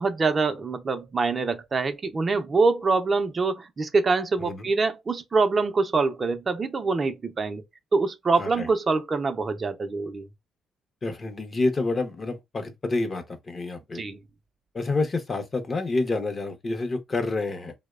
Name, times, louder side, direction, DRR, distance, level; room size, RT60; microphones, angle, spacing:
voice 1, 0.0-7.6 7.9-10.3 13.9-14.2, right 4 dB, 35° right, 0.4 m, -25 dB
voice 2, 8.4-8.7 11.0-14.0 14.7-17.7, left 3 dB, 35° left, 0.6 m, -28 dB
2.8 x 2.0 x 2.2 m
cardioid pair, 90°, 0 cm